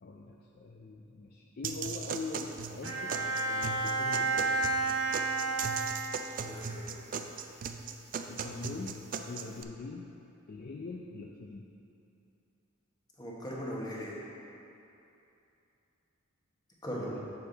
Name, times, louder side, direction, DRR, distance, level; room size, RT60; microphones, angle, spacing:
voice 1, 0.0-4.6 8.3-10.1 10.5-11.7 17.0-17.3, left 3 dB, 50° left, -1 dB, 0.4 m, -43 dB
sound 1, 1.6-9.6, right 6 dB, 40° right, 0.4 m, -38 dB
Bowed string instrument, 2.8-6.5, right 3 dB, 60° right, 1.2 m, -31 dB
voice 2, 6.4-7.3 13.2-14.2 16.8-17.2, equal, 20° left, -5 dB, 1.3 m, -39 dB
7.1 x 6.9 x 3.9 m, 2.8 s
head